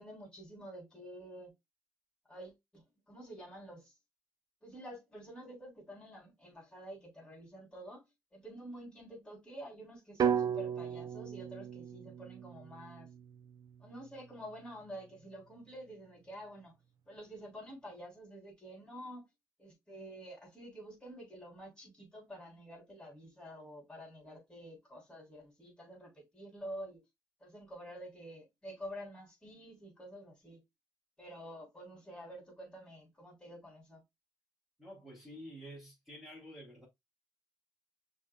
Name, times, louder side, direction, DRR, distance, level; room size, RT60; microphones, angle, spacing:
voice 1, 0.0-1.5 2.3-3.9 4.6-13.1 13.8-16.7 17.1-19.2 19.6-27.0 27.4-30.6 31.2-34.0, equal, 10° left, 3.3 m, -49 dB
sound 1, 10.2-14.3, right 7 dB, 50° right, 0.5 m, -36 dB
voice 2, 34.8-36.9, equal, 5° right, 2.9 m, -49 dB
6.1 x 3.4 x 2.3 m
cardioid pair, 100°, 8 cm